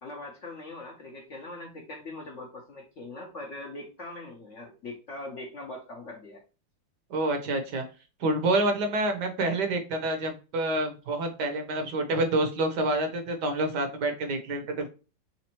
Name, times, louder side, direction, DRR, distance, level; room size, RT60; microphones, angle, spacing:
voice 1, 0.0-6.4, left 2 dB, 55° left, 0 dB, 0.9 m, -41 dB
voice 2, 7.1-7.8 8.2-14.9, right 2 dB, 65° right, 6 dB, 1.4 m, -27 dB
4.3 x 3.8 x 3.0 m, 0.33 s
omnidirectional pair, 2.1 m